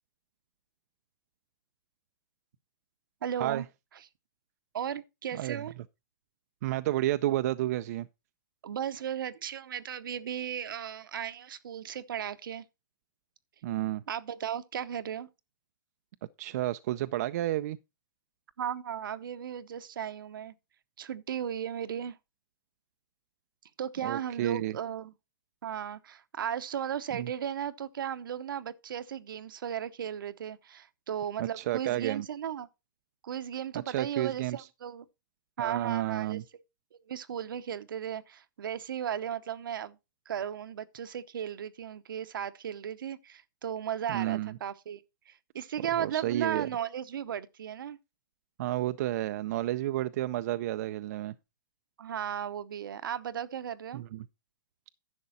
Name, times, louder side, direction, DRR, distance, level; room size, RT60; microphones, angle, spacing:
voice 1, 3.2-3.7 4.7-5.7 8.6-12.6 14.1-15.3 18.6-20.5 21.0-22.2 23.8-25.1 25.6-32.7 33.2-35.0 35.6-36.4 37.1-40.0 40.3-48.0 52.0-54.0, right 9 dB, 75° right, 0.8 m, -36 dB
voice 2, 5.3-5.6 6.6-8.1 13.6-14.0 16.4-17.8 24.0-24.8 27.1-27.3 31.4-32.3 33.9-34.7 35.6-36.4 44.1-44.6 46.0-46.7 48.6-51.3 53.9-54.3, right 14 dB, 50° right, 0.4 m, -31 dB
11.0 x 6.7 x 4.1 m
hypercardioid pair, 145°, 11 cm